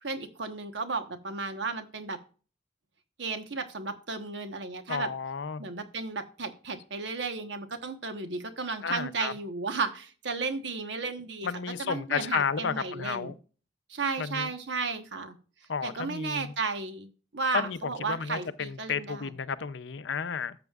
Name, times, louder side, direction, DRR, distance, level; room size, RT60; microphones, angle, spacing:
voice 1, 0.0-2.2 3.2-5.1 5.6-11.5 11.8-13.3 13.9-15.3 15.8-17.1 17.3-19.3, right 4 dB, 60° right, 1.2 m, -34 dB
voice 2, 4.9-5.6 8.8-9.3 11.4-13.3 14.2-14.5 15.7-16.5 17.5-17.8 18.1-20.6, left 6 dB, 65° left, 0.6 m, -32 dB
13.0 x 7.0 x 2.4 m
head